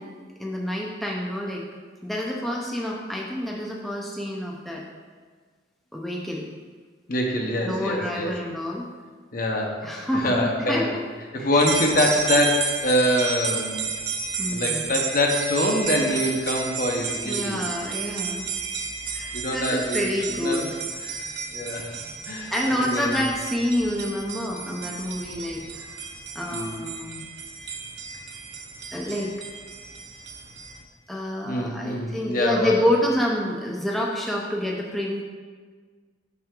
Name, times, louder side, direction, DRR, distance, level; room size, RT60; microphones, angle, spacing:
voice 1, 0.0-1.6 2.0-4.8 5.9-6.5 7.6-8.9 9.8-11.0 11.4-11.6 14.4-14.9 17.2-18.5 19.1-20.7 22.5-26.0 26.3-27.2 28.9-29.3 31.1-35.2, left 1 dB, ahead, -3 dB, 0.5 m, -28 dB
voice 2, 7.1-8.3 9.3-9.8 10.1-10.9 11.3-13.9 14.5-17.6 19.3-20.6 21.0-21.3 21.5-22.5 22.9-23.1 26.5-26.8 31.4-32.8, left 1 dB, 50° left, 1 dB, 0.8 m, -25 dB
sound 1, 11.6-30.8, right 5 dB, 60° right, 0.6 m, -32 dB
5.8 x 5.5 x 3.7 m, 1.5 s
head